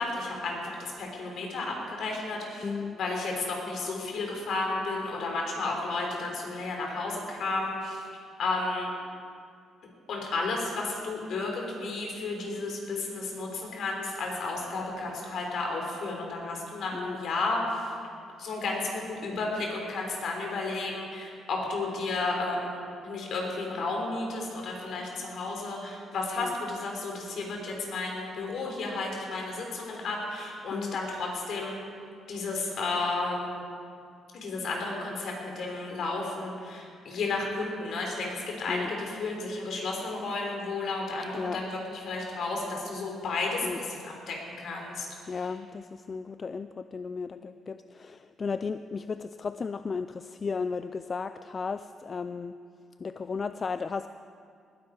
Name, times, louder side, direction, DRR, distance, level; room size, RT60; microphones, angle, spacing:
voice 1, 0.0-2.7 2.9-8.1 8.4-8.9 10.1-17.9 18.4-31.8 32.3-33.6 34.3-45.3, left 3 dB, 65° left, 0 dB, 3.6 m, -32 dB
voice 2, 2.6-3.0 16.9-17.2 26.4-26.5 30.7-31.0 38.7-38.9 41.3-41.6 43.6-43.8 45.3-52.5 53.0-54.1, left 5 dB, 40° left, 11 dB, 0.3 m, -34 dB
19.5 x 10.0 x 4.8 m, 2.3 s
cardioid pair, 90°, 0 cm